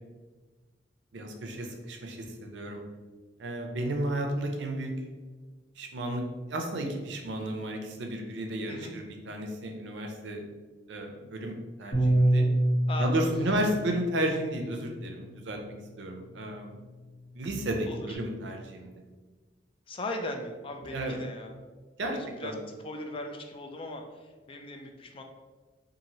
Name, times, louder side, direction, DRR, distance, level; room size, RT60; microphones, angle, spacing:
voice 1, 1.1-2.8 3.4-4.9 5.8-6.2 6.5-10.4 10.9-12.5 13.0-16.8 17.3-18.9 20.9-21.2 22.0-22.2 22.4-22.6, right 1 dB, 75° right, 3 dB, 0.5 m, -33 dB
Bass guitar, 11.9-18.2, right 1 dB, 60° left, 1.2 m, -30 dB
voice 2, 17.9-18.2 19.9-21.5 22.0-25.2, left 1 dB, 30° left, 4 dB, 0.3 m, -39 dB
2.9 x 2.5 x 2.7 m, 1.3 s
head